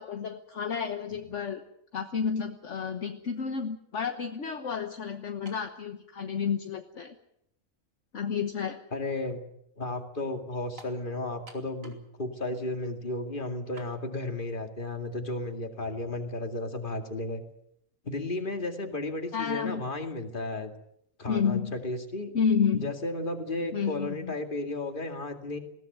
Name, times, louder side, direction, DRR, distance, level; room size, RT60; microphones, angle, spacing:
voice 1, 0.0-1.6 1.9-7.1 8.1-8.8 19.3-19.8 21.3-21.8 22.3-22.9 23.7-24.3, left 6 dB, 60° left, 6 dB, 1.5 m, -30 dB
sound 1, 5.5-5.7 6.6-6.7 10.8-11.0 11.5-12.1 12.4-12.5 13.8-14.0, right 2 dB, 75° right, 3.3 m, -49 dB
voice 2, 8.9-9.4 9.8-17.4 18.0-20.7 21.2-22.3 22.7-25.6, left 2 dB, 40° left, 5 dB, 2.5 m, -34 dB
20.5 x 17.0 x 9.3 m, 0.75 s
omnidirectional pair, 1.4 m